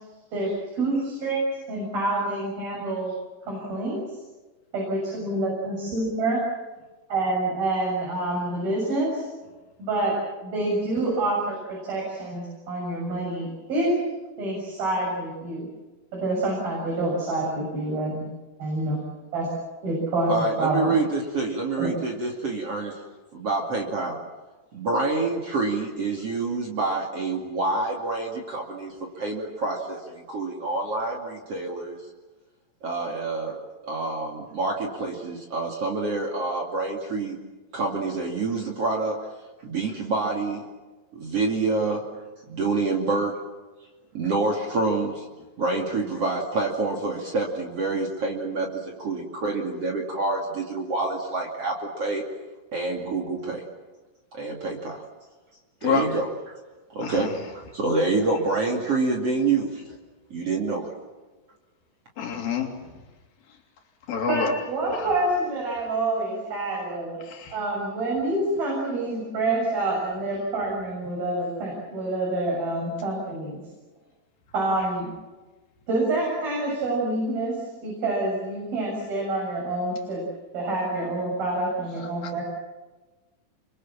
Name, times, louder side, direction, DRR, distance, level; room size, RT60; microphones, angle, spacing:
voice 1, 0.3-1.4 1.7-3.1 3.5-4.0 4.7-6.4 7.1-9.3 9.8-10.2 10.4-14.0 14.4-15.7 16.1-18.2 18.6-19.0 19.3-19.5 19.8-20.9 21.8-21.9 64.3-67.2 67.5-73.6 74.5-75.1 75.9-80.2 80.5-82.4, right 2 dB, 85° right, 9.0 m, -27 dB
voice 2, 20.3-23.0 23.3-24.2 24.7-32.0 32.8-33.6 33.8-37.4 37.7-39.2 39.6-40.6 41.1-42.1 42.5-43.4 44.1-45.2 45.6-52.2 52.7-53.6 54.3-55.0 55.8-56.6 56.9-59.8 60.3-60.9, right 3 dB, 45° right, 3.4 m, -27 dB
voice 3, 57.0-57.3 62.2-62.7 64.1-64.5 64.9-65.0 67.3-67.5, left 6 dB, 80° left, 4.9 m, -27 dB
28.0 x 24.5 x 7.4 m
omnidirectional pair, 4.1 m